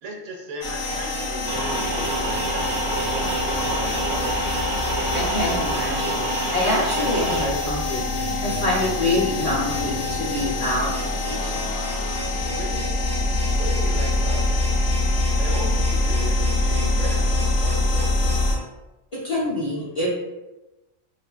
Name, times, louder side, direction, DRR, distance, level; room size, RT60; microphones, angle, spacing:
voice 1, 0.0-4.6 12.4-12.9 13.6-14.6 15.4-18.1, right 1 dB, 80° right, -1 dB, 1.0 m, -36 dB
sound 1, 0.6-18.5, left 2 dB, 65° left, 0.9 m, -24 dB
sound 2, 1.5-7.5, right 2 dB, 60° right, 0.6 m, -28 dB
voice 2, 5.1-6.2 6.5-8.1 8.4-11.7 19.1-20.1, left 1 dB, 50° left, -8 dB, 0.5 m, -26 dB
2.5 x 2.4 x 2.3 m, 1.0 s
omnidirectional pair, 1.2 m